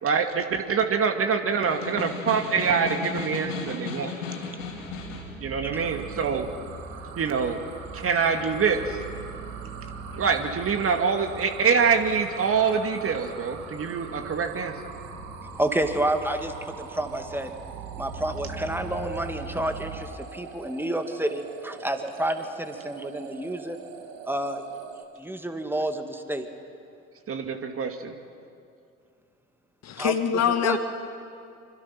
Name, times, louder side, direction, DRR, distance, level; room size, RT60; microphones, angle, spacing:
voice 1, 0.0-4.1 5.4-6.5 7.2-7.6 7.9-9.0 10.1-14.8 27.3-28.1, right 6 dB, 35° right, 6 dB, 2.2 m, -25 dB
Snare drum, 1.5-5.4, left 4 dB, 70° left, 5.4 m, -35 dB
sound 1, 4.6-20.0, right 3 dB, 80° right, 7.8 m, -42 dB
sound 2, 5.7-25.0, right 7 dB, 55° right, 2.6 m, -44 dB
voice 2, 15.6-17.5 18.0-23.8 24.3-24.6 25.2-26.5 30.0-30.1 30.6-30.8, right 1 dB, 5° right, 6 dB, 2.3 m, -29 dB
voice 3, 29.8-30.8, left 8 dB, 40° left, 7 dB, 2.1 m, -24 dB
26.0 x 25.5 x 6.0 m, 2.5 s
figure-of-eight pair, 65°, 41 cm